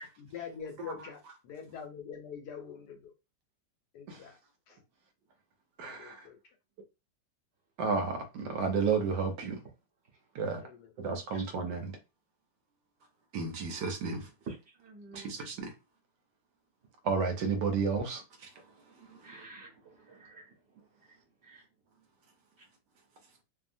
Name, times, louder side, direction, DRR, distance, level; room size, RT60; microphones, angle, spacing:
voice 1, 0.2-3.1 3.9-4.4 4.7-4.8 5.8-6.4 10.6-10.9, left 6 dB, 70° left, 1.1 m, -44 dB
voice 2, 5.8-6.3 7.8-9.6 10.3-10.6 11.0-11.9 13.3-14.3 15.2-15.7 17.0-18.5 19.0-19.2, right 5 dB, 70° right, 1.2 m, -32 dB
voice 3, 14.4-15.3 19.2-20.6 21.0-21.2 21.4-21.6 22.6-22.7, right 4 dB, 40° right, 1.2 m, -49 dB
2.7 x 2.7 x 2.5 m
omnidirectional pair, 2.0 m